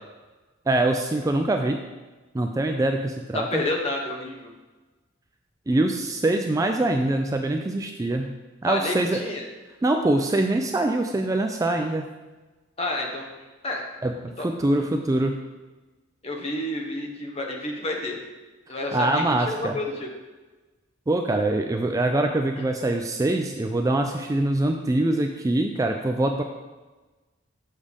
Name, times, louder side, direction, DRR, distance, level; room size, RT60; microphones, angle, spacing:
voice 1, 0.7-1.8 2.3-3.6 5.7-8.3 8.6-9.2 9.8-12.1 14.0-14.1 14.4-15.4 18.9-19.8 21.1-26.4, right 2 dB, 15° right, 4 dB, 0.3 m, -24 dB
voice 2, 3.3-4.5 8.6-9.4 12.8-13.3 13.6-13.8 14.4-14.5 16.2-18.2 18.7-20.1, left 2 dB, 30° left, 1 dB, 0.9 m, -29 dB
7.3 x 6.4 x 3.4 m, 1.2 s
head